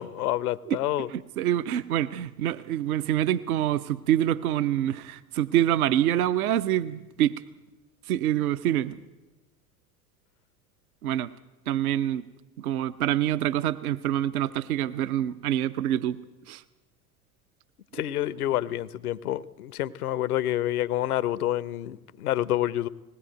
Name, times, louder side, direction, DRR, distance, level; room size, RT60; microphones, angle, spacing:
voice 1, 0.0-1.1 17.9-22.9, left 13 dB, 70° left, 18 dB, 0.8 m, -28 dB
voice 2, 1.1-7.4 8.1-9.0 11.0-11.3 11.7-12.2 12.6-16.2 16.5-16.6, right 12 dB, 65° right, 11 dB, 0.7 m, -26 dB
20.0 x 17.0 x 9.1 m, 1.1 s
figure-of-eight pair, 70°, 47 cm